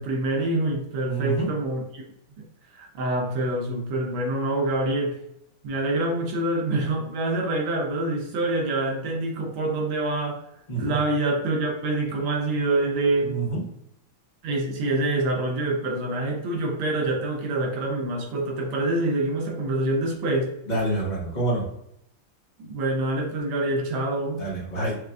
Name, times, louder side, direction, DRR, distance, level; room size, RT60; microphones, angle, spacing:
voice 1, 0.0-2.0 2.4-2.5 2.7-5.2 5.6-10.4 10.7-13.4 14.4-20.5 22.6-24.5, right 2 dB, 85° right, 1 dB, 1.6 m, -26 dB
voice 2, 1.0-1.5 10.7-11.0 13.2-13.7 20.7-21.7 24.3-25.0, right 2 dB, 30° left, -6 dB, 1.1 m, -27 dB
6.5 x 2.5 x 2.3 m, 0.77 s
omnidirectional pair, 2.1 m